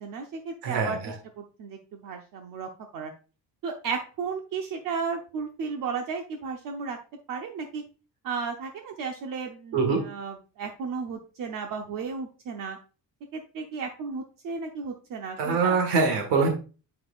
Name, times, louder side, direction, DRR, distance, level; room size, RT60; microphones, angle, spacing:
voice 1, 0.0-3.1 3.6-7.0 7.3-7.8 8.2-12.8 13.3-15.8, right 5 dB, 55° right, 4 dB, 0.8 m, -34 dB
voice 2, 0.6-1.1 9.7-10.0 15.4-16.5, right 4 dB, 90° right, 4 dB, 1.8 m, -24 dB
7.8 x 5.9 x 2.4 m, 0.34 s
cardioid pair, 160°, 39 cm